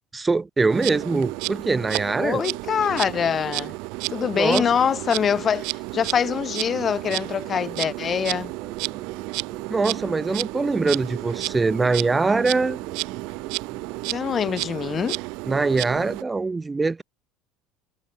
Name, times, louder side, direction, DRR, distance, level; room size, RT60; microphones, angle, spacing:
voice 1, 0.1-2.4 4.3-4.7 9.7-12.8 15.5-17.0, right 3 dB, 10° right, 1.2 m, -23 dB
Insect, 0.7-16.2, right 28 dB, 65° right, 2.3 m, -32 dB
voice 2, 2.2-3.7 4.1-8.5 14.1-15.2, left 7 dB, 25° left, 0.3 m, -24 dB
sound 1, 6.7-14.2, right 9 dB, 30° right, 6.1 m, -45 dB
cardioid pair, 155°, 0 cm